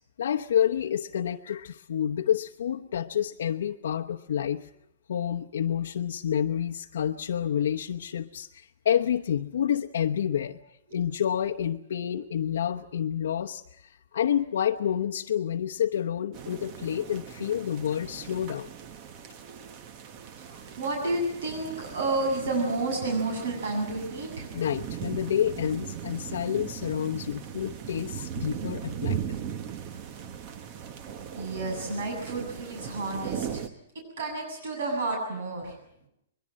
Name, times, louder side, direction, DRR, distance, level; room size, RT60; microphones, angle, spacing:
voice 1, 0.2-4.7 5.1-10.6 10.9-18.7 24.5-29.2, left 9 dB, 75° left, 2 dB, 0.9 m, -29 dB
sound 1, 16.3-33.7, right 8 dB, 30° right, 1.1 m, -38 dB
voice 2, 20.4-24.5 31.4-33.7 34.2-35.7, right 2 dB, 65° right, 2 dB, 7.7 m, -30 dB
22.5 x 22.0 x 7.6 m, 0.74 s
hypercardioid pair, 175°, 0 cm